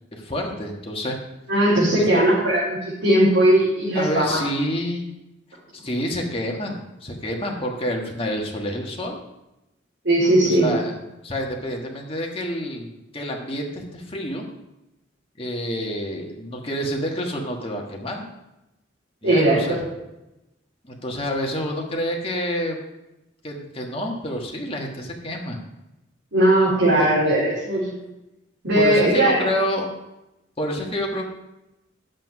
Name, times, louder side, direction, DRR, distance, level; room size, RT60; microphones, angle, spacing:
voice 1, 0.1-1.2 1.9-2.4 3.9-5.1 5.7-9.1 10.4-10.9 11.2-14.5 15.4-18.2 19.2-19.8 20.9-22.8 23.4-25.6 28.7-29.9 30.6-31.3, equal, 30° left, 0 dB, 1.4 m, -28 dB
voice 2, 1.5-4.4 10.0-10.7 19.2-19.9 26.3-27.9 28.6-29.4, right 1 dB, 80° right, -9 dB, 4.0 m, -18 dB
10.5 x 7.9 x 4.8 m, 0.93 s
head